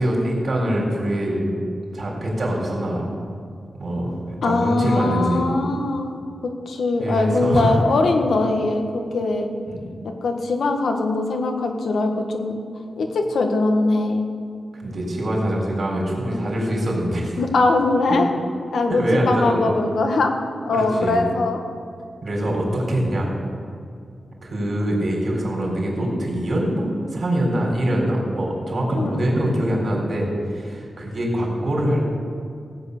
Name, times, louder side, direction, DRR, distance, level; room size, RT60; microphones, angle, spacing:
voice 1, 0.0-1.5 1.9-3.1 3.8-4.2 4.4-5.5 7.0-7.8 9.7-9.8 14.7-17.3 18.1-18.2 18.9-19.7 20.7-21.2 22.2-23.3 24.4-32.0, right 1 dB, 50° right, -1 dB, 4.0 m, -23 dB
voice 2, 4.4-6.2 6.6-9.5 10.2-12.6 13.0-14.3 17.4-18.3 18.7-20.3 20.6-21.6 28.9-29.2, left 3 dB, 80° left, 4 dB, 1.6 m, -21 dB
17.0 x 8.4 x 6.7 m, 2.4 s
wide cardioid pair, 105°, 0 cm